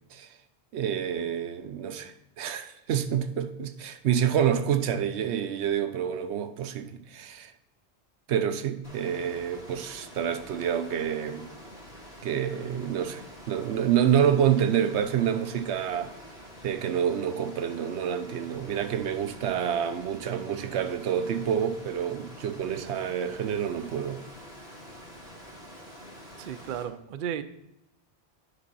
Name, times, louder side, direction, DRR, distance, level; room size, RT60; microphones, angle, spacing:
voice 1, 0.7-7.5 8.3-11.5 12.2-16.1 16.6-24.2, right 9 dB, 80° right, 0.9 m, -28 dB
Water, 8.8-26.8, equal, 65° left, 2.0 m, -47 dB
voice 2, 26.4-27.4, right 9 dB, 60° right, 0.6 m, -34 dB
9.8 x 3.8 x 5.4 m
omnidirectional pair, 1.1 m